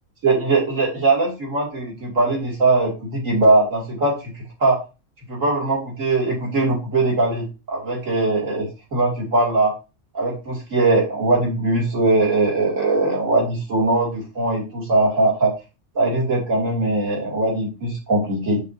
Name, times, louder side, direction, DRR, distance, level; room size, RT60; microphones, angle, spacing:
voice 1, 0.2-4.8 5.3-9.8 10.1-15.5 15.9-18.6, right 2 dB, 80° right, -2 dB, 2.7 m, -20 dB
7.6 x 6.6 x 2.7 m, 0.29 s
omnidirectional pair, 1.4 m